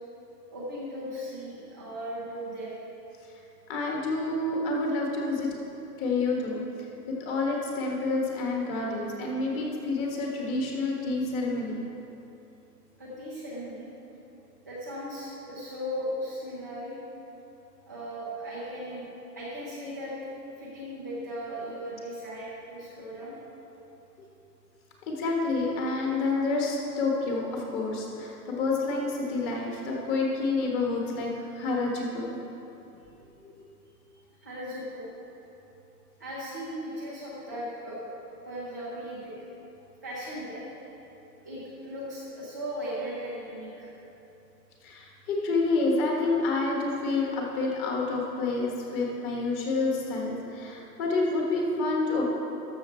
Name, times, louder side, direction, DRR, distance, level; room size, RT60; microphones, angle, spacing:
voice 1, 0.5-2.7 13.0-13.9 14.7-16.9 17.9-19.1 19.4-20.3 20.6-23.3 34.4-35.1 36.2-38.0 38.4-39.5 40.0-40.7 41.4-43.9, equal, 15° right, -10 dB, 0.4 m, -37 dB
voice 2, 3.7-5.5 6.0-6.6 7.2-11.8 25.0-32.4 44.8-52.3, left 3 dB, 25° left, -1 dB, 1.4 m, -28 dB
13.0 x 6.7 x 4.4 m, 3.0 s
hypercardioid pair, 145°, 50 cm